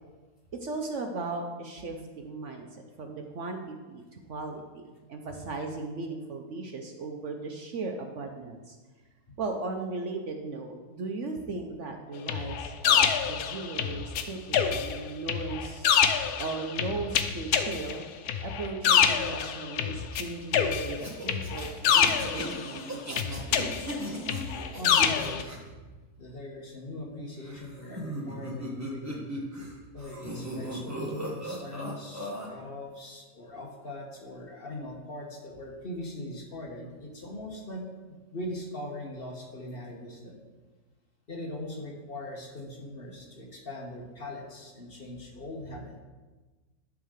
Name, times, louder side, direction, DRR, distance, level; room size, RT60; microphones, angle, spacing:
voice 1, 0.6-8.8 9.4-15.9 16.4-18.0 18.4-23.9, right 3 dB, 60° right, 3 dB, 1.0 m, -37 dB
sound 1, 12.3-14.2 14.5-20.2 20.5-22.8 23.2-25.4, left 8 dB, 85° left, 1.2 m, -26 dB
sound 2, 20.9-25.6 27.4-29.7 30.0-32.5, right 1 dB, 10° right, 1.4 m, -38 dB
voice 2, 24.8-25.9 26.2-29.3 29.9-37.8 38.1-40.4 41.3-46.0, left 1 dB, 40° left, -1 dB, 1.4 m, -40 dB
11.0 x 3.7 x 6.5 m, 1.3 s
omnidirectional pair, 1.6 m